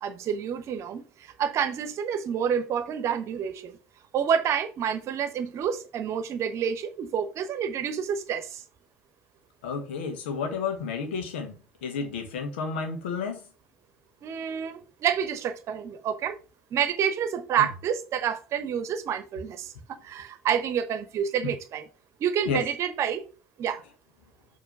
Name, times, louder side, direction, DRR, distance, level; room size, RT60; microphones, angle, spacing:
voice 1, 0.0-3.8 4.1-8.6 14.2-16.4 16.7-21.9 22.2-23.2 23.6-23.8, right 8 dB, 50° right, 0.9 m, -28 dB
voice 2, 9.6-13.4 17.6-17.7 21.4-21.5 22.4-22.6, left 5 dB, 75° left, 1.2 m, -31 dB
6.9 x 3.1 x 5.5 m
figure-of-eight pair, 55°, 6 cm